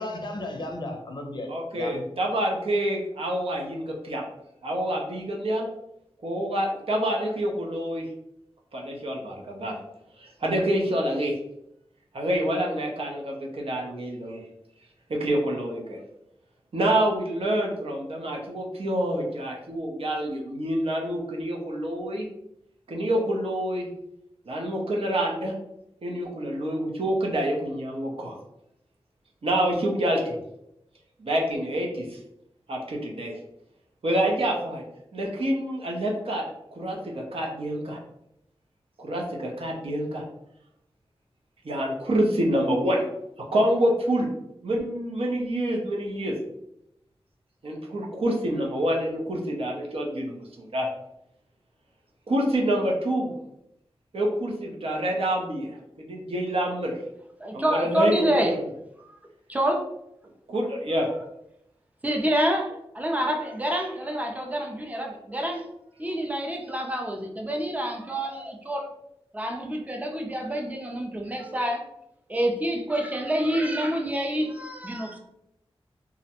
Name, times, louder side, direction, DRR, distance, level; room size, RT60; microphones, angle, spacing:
voice 1, 0.0-2.1, left 1 dB, 45° left, 2 dB, 0.5 m, -34 dB
voice 2, 1.5-4.2 4.6-5.7 6.2-8.1 8.7-9.8 10.2-11.3 12.1-14.4 15.1-16.0 16.7-22.3 22.9-23.9 24.5-25.5 26.0-28.4 29.4-30.4 31.2-32.2 32.7-33.3 34.0-34.8 35.1-36.4 36.7-38.0 39.0-40.2 41.6-43.1 43.5-44.3 44.6-46.3 47.6-50.9 52.3-53.3 54.1-56.9 57.5-58.3 60.5-61.1, right 1 dB, 65° right, -1 dB, 0.6 m, -27 dB
voice 3, 57.4-58.6 59.0-59.2 59.5-59.9 61.1-61.2 62.0-65.6 66.0-68.9 69.3-71.8 72.3-75.2, equal, 15° right, 2 dB, 0.4 m, -27 dB
2.4 x 2.1 x 2.8 m, 0.81 s
wide cardioid pair, 85°, 10 cm